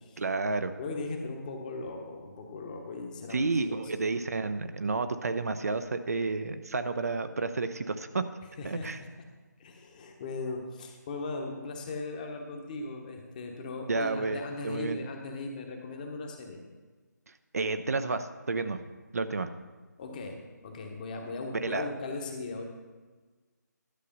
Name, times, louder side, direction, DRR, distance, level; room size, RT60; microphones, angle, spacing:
voice 1, 0.2-0.8 3.3-8.3 8.6-9.0 13.9-15.0 17.5-18.8 19.1-19.5 21.6-21.9, right 3 dB, 55° right, 9 dB, 0.7 m, -31 dB
voice 2, 0.8-3.9 8.6-9.1 9.6-16.6 20.0-22.7, left 3 dB, 25° left, 2 dB, 1.2 m, -38 dB
11.5 x 6.6 x 5.5 m, 1.3 s
figure-of-eight pair, 155°, 10 cm